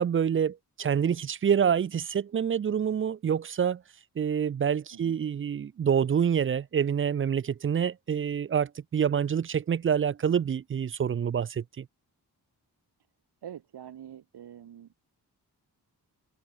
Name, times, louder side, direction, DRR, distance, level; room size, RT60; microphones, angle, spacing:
voice 1, 0.0-3.8 4.2-11.9, right 8 dB, 35° right, 0.4 m, -27 dB
voice 2, 13.4-14.9, right 10 dB, 70° right, 1.0 m, -45 dB
cardioid pair, 55°, 40 cm